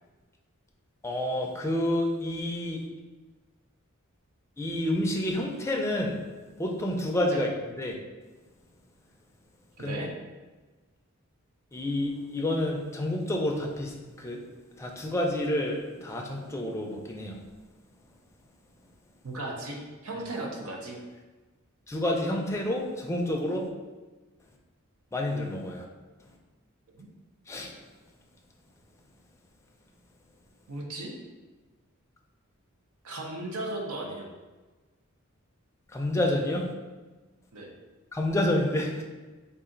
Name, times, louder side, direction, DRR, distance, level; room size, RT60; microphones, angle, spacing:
voice 1, 1.0-2.8 4.6-6.2 6.6-7.5 7.8-7.9 9.8-10.0 11.7-14.4 14.8-17.4 21.9-23.7 25.1-25.8 27.5-27.7 35.9-36.7 38.1-39.0, left 1 dB, 15° left, 0 dB, 0.4 m, -29 dB
voice 2, 9.8-10.1 19.2-19.8 20.0-21.0 27.0-27.1 30.7-31.1 33.0-34.3 37.5-37.7, right 2 dB, 85° right, 0 dB, 0.8 m, -36 dB
3.9 x 2.4 x 3.8 m, 1.2 s
head